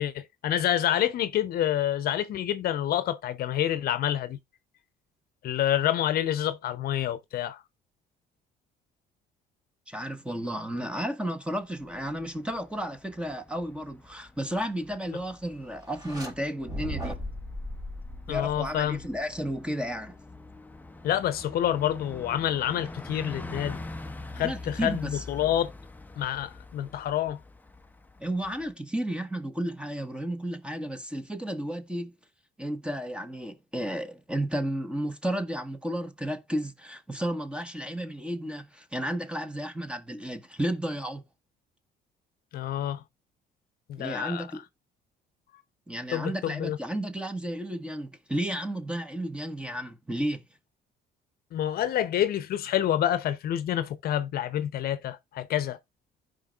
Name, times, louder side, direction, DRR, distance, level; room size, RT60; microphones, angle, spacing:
voice 1, 0.0-4.4 5.4-7.6 18.3-19.0 21.0-23.8 24.3-25.7 26.2-27.4 42.5-43.0 43.9-44.5 46.1-46.8 51.5-55.8, left 11 dB, 65° left, 0.8 m, -28 dB
voice 2, 9.9-17.2 18.3-20.2 24.4-25.2 28.2-32.1 32.6-41.2 44.0-44.6 45.9-50.4, equal, 5° right, 1.4 m, -33 dB
Bus, 11.6-28.7, left 2 dB, 10° left, 0.7 m, -45 dB
sound 1, 15.9-16.3 16.6-19.2, equal, 25° right, 3.2 m, -37 dB
15.5 x 5.3 x 2.5 m
cardioid pair, 110°, 17 cm